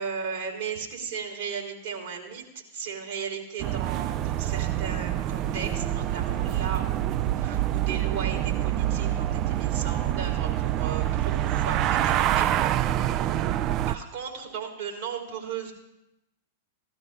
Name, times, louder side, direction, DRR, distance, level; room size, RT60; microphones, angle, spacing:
voice 1, 0.0-2.4 2.7-12.4 12.8-15.7, right 6 dB, 55° right, 0 dB, 3.1 m, -36 dB
sound 1, 3.6-14.0, right 12 dB, 35° right, 0.4 m, -26 dB
16.0 x 13.0 x 3.3 m, 0.87 s
figure-of-eight pair, 100°, 0 cm